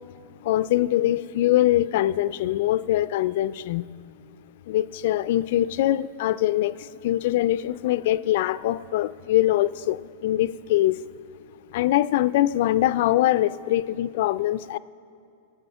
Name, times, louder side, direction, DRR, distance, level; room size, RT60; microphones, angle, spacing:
voice 1, 0.5-3.8 4.7-6.7 7.0-10.0 10.2-11.0 11.7-14.8, left 14 dB, 65° left, 17 dB, 0.3 m, -23 dB
16.0 x 8.0 x 5.5 m, 2.6 s
hypercardioid pair, 125°, 0 cm